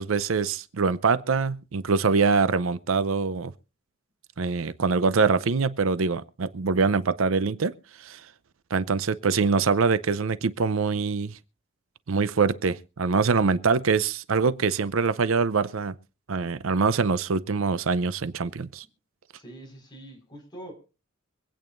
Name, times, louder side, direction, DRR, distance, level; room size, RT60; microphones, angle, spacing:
voice 1, 0.0-3.5 4.4-7.7 8.0-8.2 8.7-11.4 12.1-15.9 16.3-18.8, right 4 dB, 70° right, 0.6 m, -24 dB
voice 2, 19.3-20.7, right 1 dB, 20° left, 4.9 m, -44 dB
25.0 x 8.8 x 2.5 m
head